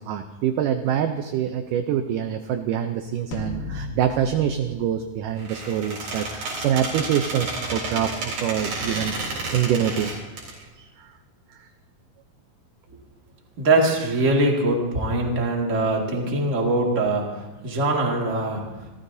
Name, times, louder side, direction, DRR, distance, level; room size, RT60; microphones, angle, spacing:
voice 1, 0.0-9.1 9.5-10.2 10.5-10.6, right 9 dB, 80° right, 7 dB, 1.9 m, -25 dB
sound 1, 3.3-5.9, left 2 dB, 70° left, 3.2 m, -36 dB
Squeak, 5.4-10.5, right 2 dB, 65° right, 5.4 m, -31 dB
voice 2, 13.6-17.3 17.6-18.6, right 2 dB, 25° right, -1 dB, 1.7 m, -22 dB
28.0 x 14.0 x 2.7 m, 1.1 s
omnidirectional pair, 4.4 m